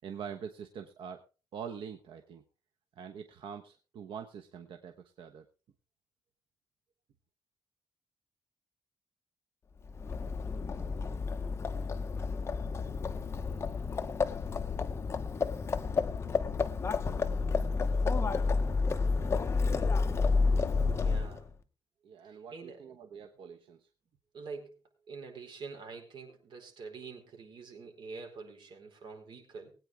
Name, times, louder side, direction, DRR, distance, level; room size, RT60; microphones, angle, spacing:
voice 1, 0.0-1.2 1.5-2.4 3.0-5.5 22.0-23.9, right 7 dB, 85° right, 6 dB, 1.1 m, -44 dB
Livestock farm animals working animals, 9.9-21.5, left 4 dB, 30° left, 1.0 m, -30 dB
voice 2, 20.8-21.5 22.2-22.8 24.3-24.8 25.1-29.7, right 4 dB, 65° right, 2 dB, 4.5 m, -46 dB
20.5 x 9.0 x 3.6 m, 0.34 s
wide cardioid pair, 145°, 9 cm